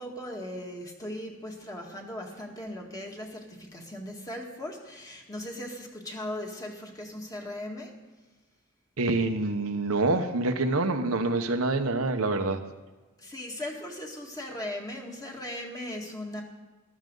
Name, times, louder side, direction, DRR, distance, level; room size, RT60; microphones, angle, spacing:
voice 1, 0.0-8.0 13.2-16.4, left 1 dB, 15° left, 0 dB, 1.9 m, -38 dB
voice 2, 9.0-12.6, right 2 dB, 75° right, 6 dB, 1.0 m, -26 dB
14.5 x 12.5 x 3.9 m, 1.3 s
head